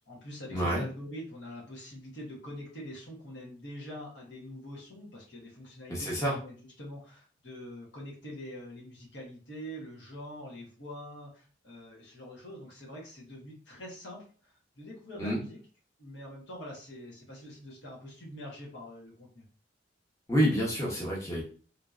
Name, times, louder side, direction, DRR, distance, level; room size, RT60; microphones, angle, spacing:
voice 1, 0.0-15.6 16.0-19.4, equal, 70° left, -3 dB, 1.2 m, -45 dB
voice 2, 0.5-0.8 5.9-6.3 15.2-15.4 20.3-21.4, equal, 15° left, -5 dB, 0.9 m, -28 dB
3.6 x 2.7 x 2.4 m, 0.41 s
head